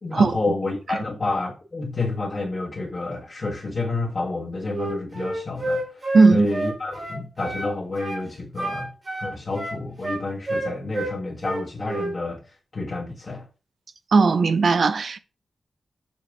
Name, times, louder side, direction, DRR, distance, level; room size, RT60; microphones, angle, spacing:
voice 1, 0.0-8.9 9.2-13.5, left 2 dB, 35° left, 1.4 m, -29 dB
Wind instrument woodwind instrument, 4.7-7.7 8.0-8.2 8.6-11.1 11.4-12.1, right 2 dB, 35° right, 2.1 m, -29 dB
voice 2, 6.1-6.5 14.1-15.2, right 4 dB, 50° right, 0.5 m, -17 dB
7.4 x 4.2 x 4.8 m
wide cardioid pair, 180°, 0 cm